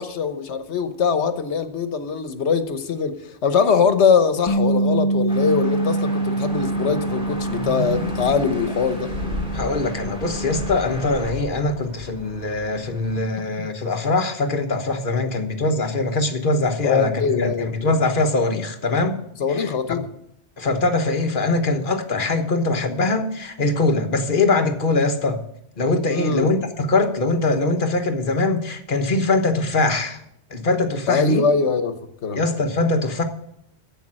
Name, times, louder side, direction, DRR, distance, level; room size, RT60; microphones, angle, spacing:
voice 1, 0.0-9.1 16.8-17.7 19.4-20.0 26.1-26.6 31.1-32.4, left 5 dB, 80° left, 1.3 m, -22 dB
Bass guitar, 4.5-10.7, right 2 dB, 35° left, 0.6 m, -25 dB
sound 1, 5.3-11.3, left 1 dB, 5° right, 2.8 m, -34 dB
sound 2, 6.4-13.2, left 1 dB, 90° right, 2.2 m, -37 dB
voice 2, 9.5-19.2 19.5-19.7 20.6-25.4 25.8-30.2 30.5-31.4 32.3-33.2, left 2 dB, 50° left, 1.3 m, -22 dB
10.5 x 8.0 x 7.5 m
omnidirectional pair, 1.1 m